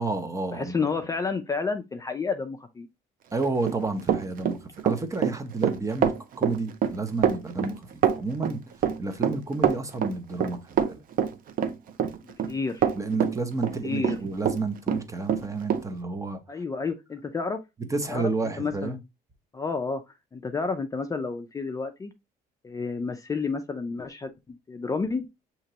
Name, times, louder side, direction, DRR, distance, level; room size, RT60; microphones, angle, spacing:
voice 1, 0.0-0.9 3.3-7.8 8.1-8.6 9.0-11.0 13.0-16.4 17.9-19.0, right 3 dB, 20° right, 0.7 m, -30 dB
voice 2, 0.5-2.9 12.5-12.9 13.8-14.2 16.5-17.6 18.1-18.3 18.6-19.0 19.5-20.0 20.3-22.1 22.6-25.3, left 4 dB, 20° left, 0.4 m, -30 dB
Run, 3.4-14.6 14.9-15.8, right 8 dB, 55° right, 0.6 m, -25 dB
6.4 x 2.9 x 2.8 m
cardioid pair, 110°, 17 cm